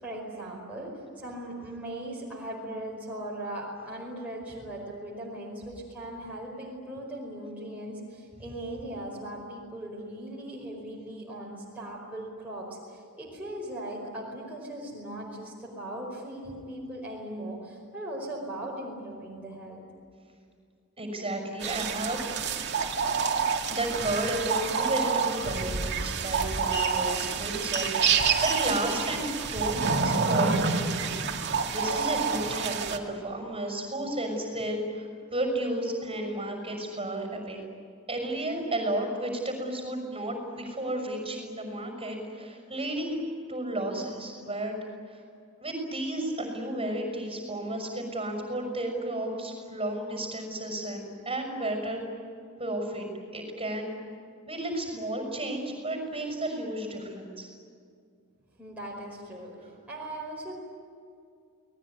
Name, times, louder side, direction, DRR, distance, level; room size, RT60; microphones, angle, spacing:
voice 1, 0.0-19.8 58.6-60.6, right 1 dB, 5° right, -4 dB, 5.0 m, -39 dB
voice 2, 21.0-22.3 23.3-31.2 31.7-37.7 38.1-43.2 43.5-44.7 45.1-45.2 45.6-52.0 52.6-53.0 53.3-53.9 54.5-57.5, right 1 dB, 25° right, 4 dB, 6.1 m, -32 dB
sound 1, 21.6-33.0, right 5 dB, 55° right, 2.3 m, -28 dB
29.0 x 20.0 x 9.8 m, 2.3 s
head